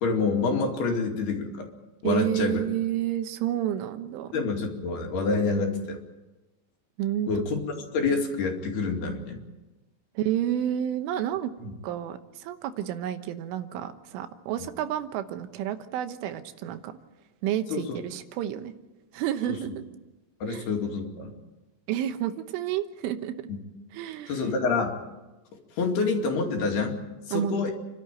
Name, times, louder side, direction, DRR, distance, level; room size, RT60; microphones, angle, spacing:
voice 1, 0.0-1.7 2.0-2.6 4.3-6.0 7.3-7.6 7.9-9.4 11.6-11.7 14.6-14.7 17.7-18.0 19.5-19.6 20.4-21.3 23.5-23.6 24.3-25.0 25.8-27.0 27.3-27.7, left 4 dB, 60° left, 2 dB, 4.2 m, -27 dB
voice 2, 2.0-4.3 7.0-7.3 10.2-11.5 11.8-17.0 17.4-18.7 19.1-19.8 20.5-20.7 21.9-23.4 23.9-24.4 27.3-27.7, right 11 dB, 85° right, 9 dB, 3.7 m, -30 dB
30.0 x 12.5 x 9.1 m, 1.1 s
omnidirectional pair, 5.5 m